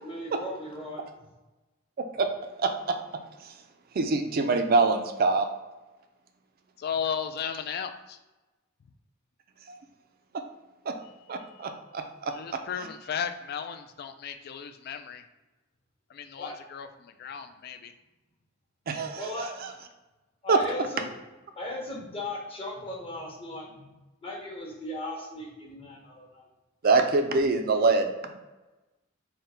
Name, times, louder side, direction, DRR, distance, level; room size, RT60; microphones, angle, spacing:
voice 1, 0.0-1.0 16.4-16.6 19.2-19.5 20.4-21.2 21.6-23.9 24.2-26.5, left 1 dB, 30° left, -2 dB, 0.9 m, -37 dB
voice 2, 2.6-3.0 3.4-3.5 3.9-5.5 9.7-9.8 10.9-11.0 11.3-12.3 18.9-19.5 20.5-20.6 26.8-28.4, right 3 dB, 45° right, 6 dB, 0.4 m, -25 dB
voice 3, 6.8-8.2 11.5-11.7 12.3-15.2 16.1-17.9, left 7 dB, 50° left, 9 dB, 0.3 m, -35 dB
3.7 x 2.2 x 4.2 m, 1.1 s
head